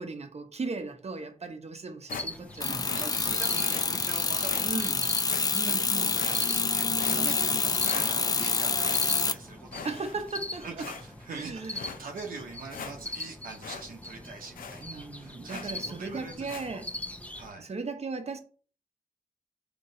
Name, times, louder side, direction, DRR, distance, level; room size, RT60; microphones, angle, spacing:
voice 1, 0.0-3.1 4.6-5.1 5.5-6.1 9.8-10.9 11.3-11.9 14.8-16.9 17.6-18.4, right 3 dB, 50° right, 0.8 m, -37 dB
sound 1, 2.1-2.6 2.9-3.1 3.7-3.9 4.5-4.7 5.3-5.7 6.1-6.7 7.0-7.6 7.9-8.4 8.8-9.4 9.7-10.4 10.8-11.3 11.7-12.0 12.4-12.5 12.7-13.3 13.6-13.8 14.1-14.2 14.5-14.8 15.5-15.8 16.5-16.7, left 6 dB, 85° left, 0.5 m, -41 dB
sound 2, 2.1-17.5, left 1 dB, 10° left, 0.8 m, -42 dB
sound 3, 2.6-9.3, left 4 dB, 25° left, 0.3 m, -27 dB
voice 2, 2.7-10.0 10.5-16.8 17.4-17.7, right 4 dB, 85° right, 0.8 m, -43 dB
4.0 x 3.1 x 3.7 m
cardioid pair, 50°, 14 cm